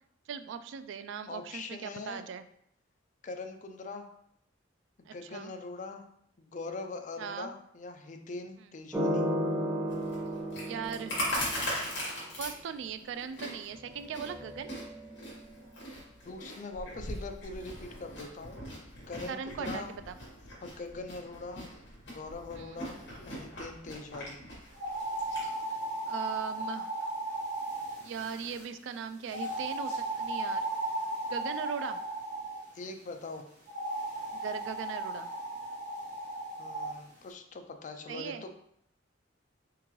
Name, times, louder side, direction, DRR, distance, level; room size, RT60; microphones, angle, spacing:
voice 1, 0.3-2.4 5.1-5.5 7.2-7.5 10.6-11.1 12.4-14.7 19.3-20.2 22.5-22.8 26.1-26.9 28.0-30.7 31.3-32.0 34.3-35.3 38.1-38.4, right 7 dB, 70° right, 10 dB, 0.3 m, -39 dB
voice 2, 1.3-2.2 3.2-4.1 5.0-6.1 6.4-9.3 16.2-18.6 19.1-19.9 20.6-21.7 22.1-23.0 23.3-24.4 32.7-33.4 36.6-38.5, left 3 dB, 40° left, 6 dB, 0.4 m, -42 dB
sound 1, 8.9-12.0 13.7-15.4, equal, 5° right, 0.6 m, -34 dB
Chewing mastication, 9.9-25.5, left 1 dB, 60° left, 1.6 m, -40 dB
sound 2, 24.7-28.6 29.3-32.6 33.7-36.9, right 2 dB, 45° right, 1.5 m, -35 dB
3.8 x 3.6 x 3.0 m, 0.72 s
head